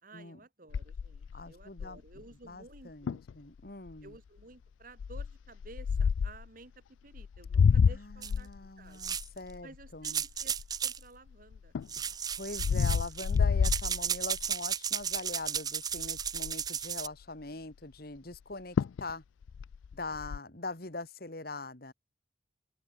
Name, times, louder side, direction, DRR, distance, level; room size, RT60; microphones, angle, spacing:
voice 1, 0.0-3.2 4.0-8.5 8.8-9.0 9.6-10.6 10.8-11.7, right 2 dB, 45° right, 1.8 m, -54 dB
sound 1, 0.7-2.2 2.7-2.8 3.1-3.3 3.9-4.2 5.0-6.5 7.1-11.0 11.5-14.5 15.0-15.3 15.6-15.7 15.9-16.7 18.3-18.4 18.8-19.1 19.4-20.4, left 6 dB, 85° left, 0.4 m, -29 dB
voice 2, 1.3-4.2 7.9-10.2 12.3-19.2 19.9-21.9, left 2 dB, 50° left, 2.2 m, -42 dB
sound 2, 8.2-8.3 9.0-9.4 10.0-11.0 11.9-13.4 13.6-17.1, right 8 dB, 20° right, 0.4 m, -34 dB
open air
head